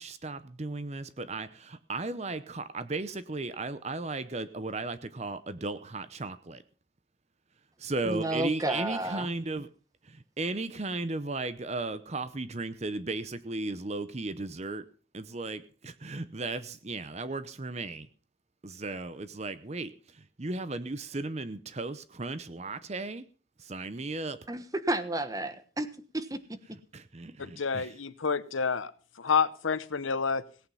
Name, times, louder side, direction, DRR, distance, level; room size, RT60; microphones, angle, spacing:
voice 1, 0.0-6.6 7.8-9.7 10.1-14.8 15.1-15.6 16.0-18.1 18.6-19.9 20.4-23.2 23.6-24.4 26.9-27.9, right 2 dB, 35° right, 13 dB, 0.8 m, -35 dB
voice 2, 8.0-9.3 24.5-25.9 26.1-26.4, right 1 dB, 20° right, 11 dB, 1.2 m, -31 dB
voice 3, 27.4-28.9 29.2-30.4, left 5 dB, 85° left, 16 dB, 0.9 m, -28 dB
17.5 x 8.8 x 5.6 m, 0.40 s
head